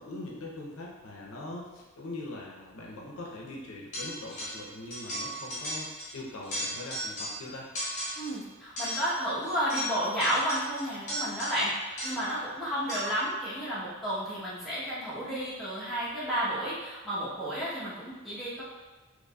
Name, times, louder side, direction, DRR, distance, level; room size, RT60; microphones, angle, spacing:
voice 1, 0.0-7.7, left 2 dB, 70° left, -2 dB, 0.6 m, -42 dB
sound 1, 3.9-4.7 4.9-6.2 6.4-7.4 7.8-8.4 8.8-12.4 12.9-13.3, equal, 35° left, 0.9 m, -36 dB
voice 2, 8.2-18.6, equal, ahead, -11 dB, 0.9 m, -32 dB
3.9 x 2.9 x 2.2 m, 1.2 s
head